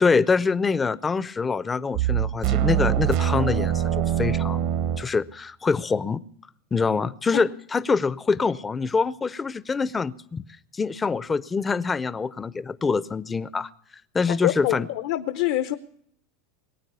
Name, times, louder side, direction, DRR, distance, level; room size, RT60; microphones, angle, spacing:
voice 1, 0.0-3.8 4.2-4.7 5.0-6.2 6.7-10.4 10.7-13.7 14.1-14.9, left 4 dB, 15° left, 17 dB, 0.5 m, -25 dB
sound 1, 1.9-5.1, right 10 dB, 60° right, 1.0 m, -24 dB
voice 2, 14.3-15.8, left 15 dB, 65° left, 10 dB, 0.7 m, -25 dB
21.0 x 9.0 x 6.7 m, 0.65 s
supercardioid pair, 135°, 0 cm